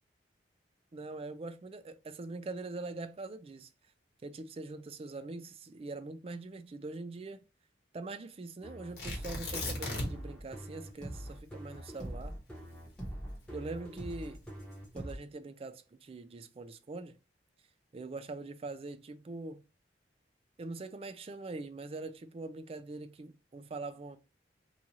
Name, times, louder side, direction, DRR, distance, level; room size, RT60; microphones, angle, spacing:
voice 1, 0.9-3.7 4.2-7.4 7.9-12.3 13.5-14.4 14.9-17.2 17.9-19.6 20.6-24.2, right 3 dB, 35° right, 0.3 m, -43 dB
sound 1, 8.6-15.2, right 1 dB, 5° left, 1.0 m, -43 dB
Tearing, 9.0-10.4 10.7-10.8 11.3-13.7 14.4-14.8, left 2 dB, 60° left, 1.2 m, -38 dB
3.1 x 2.4 x 4.0 m
head